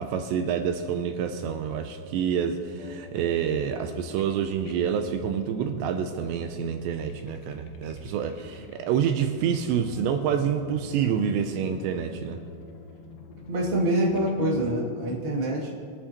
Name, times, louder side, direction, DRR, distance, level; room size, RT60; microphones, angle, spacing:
voice 1, 0.0-12.4, right 8 dB, 85° right, 6 dB, 2.6 m, -27 dB
sound 1, 1.9-14.6, left 3 dB, 75° left, 2.2 m, -47 dB
voice 2, 13.5-15.7, right 1 dB, 50° right, -5 dB, 0.6 m, -25 dB
23.5 x 10.0 x 3.0 m, 2.2 s
omnidirectional pair, 5.4 m